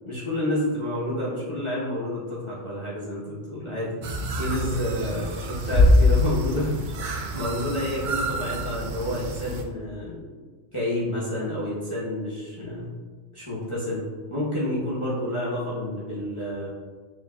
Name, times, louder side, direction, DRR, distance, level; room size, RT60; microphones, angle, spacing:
voice 1, 0.0-3.9 4.4-6.8 7.3-10.2 10.7-12.9 13.3-14.0 14.3-16.7, left 1 dB, 30° left, -9 dB, 0.7 m, -29 dB
sound 1, 4.0-9.6, right 3 dB, 90° right, 0.4 m, -32 dB
sound 2, 5.7-7.2, left 2 dB, 80° left, 1.4 m, -19 dB
6.3 x 2.6 x 2.2 m, 1.5 s
omnidirectional pair, 1.4 m